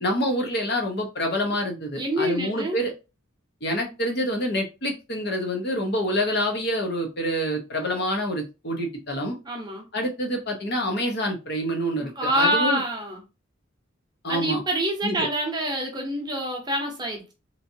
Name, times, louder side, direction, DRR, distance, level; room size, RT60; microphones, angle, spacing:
voice 1, 0.0-2.9 3.6-9.4 9.9-12.8 14.2-14.6 15.0-15.3, equal, 55° left, 0.9 m, -27 dB
voice 2, 2.0-2.8 9.5-9.9 12.0-13.2 14.3-17.3, right 1 dB, 20° right, 0.8 m, -26 dB
3.0 x 2.7 x 2.7 m
head